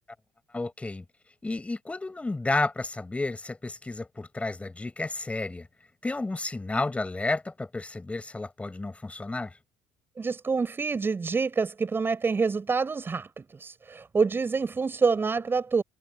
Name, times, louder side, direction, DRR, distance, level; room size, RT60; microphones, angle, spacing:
voice 1, 0.5-1.0 1.4-5.7 6.0-9.6, left 2 dB, 15° left, 6.6 m, -31 dB
voice 2, 10.2-15.8, right 4 dB, 30° right, 6.1 m, -27 dB
supercardioid pair, 80°, 8 cm